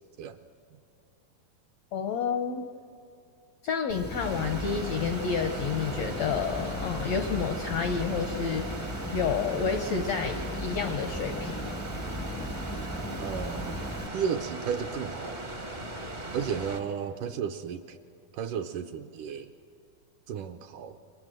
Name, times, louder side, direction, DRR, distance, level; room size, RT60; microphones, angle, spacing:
voice 1, 1.9-2.6 3.6-11.8, left 6 dB, 80° left, 7 dB, 1.5 m, -30 dB
sound 1, 3.9-14.1, left 1 dB, 15° left, 0.3 m, -37 dB
sound 2, 4.2-16.8, right 2 dB, 50° right, 0.5 m, -38 dB
voice 2, 13.2-13.8 14.1-15.4 16.3-18.0 18.3-19.5 20.3-21.0, right 7 dB, 75° right, 7 dB, 2.0 m, -33 dB
28.5 x 23.5 x 7.6 m, 2.4 s
omnidirectional pair, 4.3 m